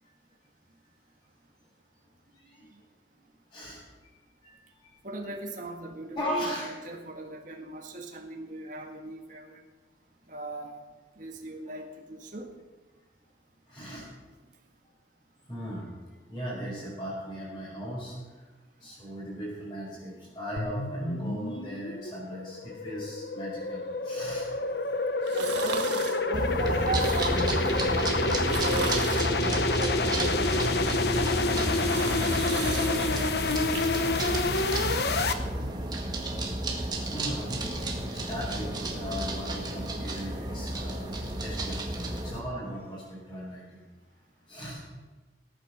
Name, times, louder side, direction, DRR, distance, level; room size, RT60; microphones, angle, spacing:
voice 1, 2.3-2.7 3.5-3.8 4.4-4.9 6.2-6.7 13.7-14.1 15.5-15.9 16.3-18.2 18.8-24.9 37.0-43.8 44.5-44.8, equal, 20° left, -10 dB, 5.5 m, -38 dB
voice 2, 5.0-9.6 10.3-10.8 11.2-12.5 25.3-32.2 32.5-33.2 34.1-34.5, right 2 dB, 45° right, 1 dB, 1.8 m, -38 dB
sound 1, 20.6-35.3, left 3 dB, 65° left, 1.0 m, -28 dB
sound 2, 25.2-26.2 26.8-27.6 28.3-29.3 29.9-30.9 31.4-33.8 34.2-34.3, right 5 dB, 90° right, 1.6 m, -38 dB
sound 3, 26.3-42.4, right 1 dB, 25° right, 1.9 m, -32 dB
18.0 x 9.1 x 6.7 m, 1.3 s
head